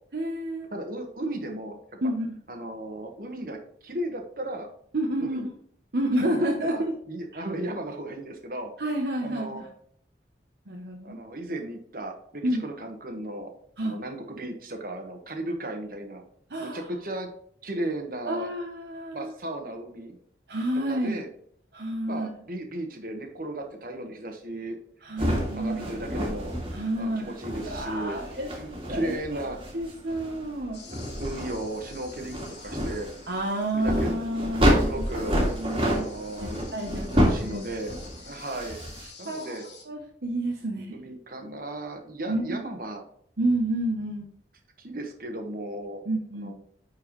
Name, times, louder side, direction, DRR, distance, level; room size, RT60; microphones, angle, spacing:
voice 1, 0.1-0.7 2.0-2.3 4.9-5.5 5.9-6.9 7.3-7.4 8.8-9.7 10.7-11.2 12.4-12.6 13.8-14.0 16.5-16.9 18.3-19.3 20.5-21.2 21.7-22.3 25.0-25.9 26.7-27.3 27.6-28.5 28.9-29.2 29.7-30.8 33.3-36.1 36.4-37.7 39.0-39.6 39.9-40.9 42.3-42.6 43.4-44.3 46.1-46.5, right 1 dB, 65° right, 0 dB, 1.0 m, -29 dB
voice 2, 0.7-1.7 2.5-4.7 5.2-5.5 6.2-8.7 9.2-9.6 11.0-13.5 13.8-16.2 16.6-17.3 17.6-18.5 19.1-20.2 20.9-21.3 22.1-24.8 25.2-26.5 27.0-28.2 28.6-29.6 31.2-33.1 33.7-34.1 34.6-35.4 35.8-36.7 37.1-37.9 38.2-38.8 39.2-39.7 40.6-43.0 44.8-46.0 46.3-46.5, right 1 dB, 50° right, 4 dB, 1.5 m, -35 dB
sound 1, 25.2-39.0, equal, 30° right, 2.1 m, -29 dB
sound 2, 30.7-34.1 34.5-39.8, left 5 dB, 75° left, 2.4 m, -50 dB
10.5 x 4.7 x 3.2 m, 0.64 s
head